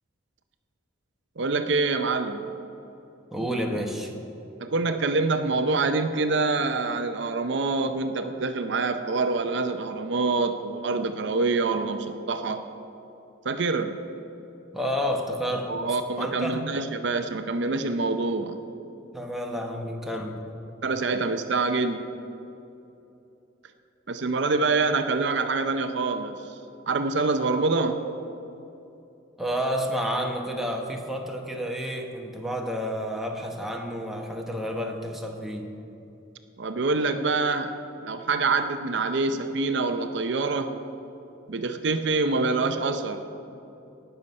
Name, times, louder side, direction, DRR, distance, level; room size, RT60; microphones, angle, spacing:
voice 1, 1.4-2.4 4.6-12.6 13.4-13.9 15.7-18.6 20.8-22.0 24.1-26.6 26.9-28.0 36.6-37.7 38.0-40.7 41.5-43.2, right 3 dB, 60° right, 8 dB, 0.6 m, -26 dB
voice 2, 3.3-4.1 14.7-15.7 16.2-16.7 19.1-20.4 29.4-35.7, equal, ahead, 1 dB, 1.0 m, -30 dB
18.5 x 6.9 x 5.3 m, 2.9 s
head